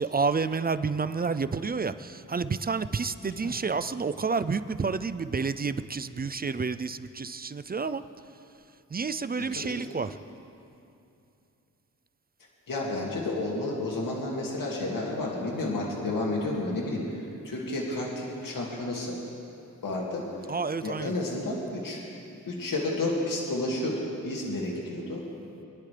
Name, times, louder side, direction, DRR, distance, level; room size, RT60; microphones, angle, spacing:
voice 1, 0.0-8.0 8.9-10.2 20.5-21.1, right 4 dB, 30° right, 12 dB, 0.4 m, -29 dB
voice 2, 3.2-3.6 9.4-9.8 12.7-19.2 19.8-20.2 20.8-22.0 22.5-25.2, left 2 dB, 80° left, -3 dB, 2.3 m, -31 dB
23.5 x 11.0 x 3.3 m, 2.7 s
cardioid pair, 75°, 33 cm